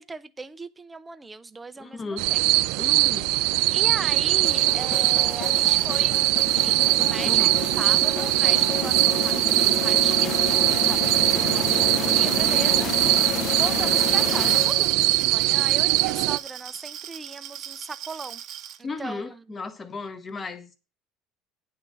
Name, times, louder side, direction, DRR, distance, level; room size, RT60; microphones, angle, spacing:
voice 1, 0.0-2.5 3.7-18.4 18.8-19.6, right 3 dB, 10° right, 0.5 m, -38 dB
voice 2, 1.8-2.3 2.8-3.3 7.2-7.5 18.8-20.8, left 4 dB, 20° left, 0.9 m, -35 dB
sound 1, 2.2-16.4, right 20 dB, 70° right, 0.3 m, -21 dB
sound 2, 4.4-15.1, left 8 dB, 40° left, 0.6 m, -31 dB
Glass, 13.9-18.8, right 10 dB, 45° right, 0.7 m, -39 dB
10.0 x 3.8 x 7.4 m
cardioid pair, 175°, 0 cm